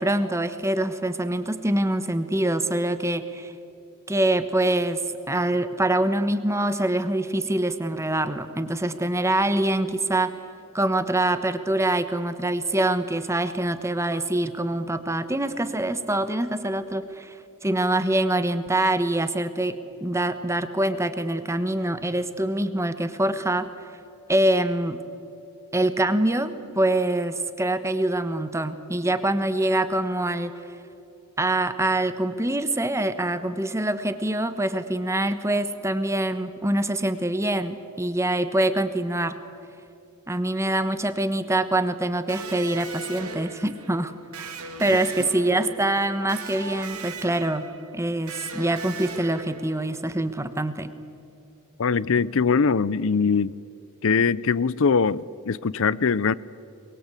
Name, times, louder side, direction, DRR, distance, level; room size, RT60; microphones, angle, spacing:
voice 1, 0.0-3.5 4.1-10.3 10.7-17.3 17.6-23.7 24.3-25.0 25.7-30.5 31.4-39.4 40.3-44.5 44.8-47.7 47.9-50.9, right 1 dB, 15° right, 1.1 m, -25 dB
Electric guitar, 42.3-50.0, right 4 dB, 80° right, 2.5 m, -39 dB
voice 2, 51.8-53.5 54.0-56.3, left 5 dB, 60° left, 0.6 m, -22 dB
23.0 x 23.0 x 8.3 m
head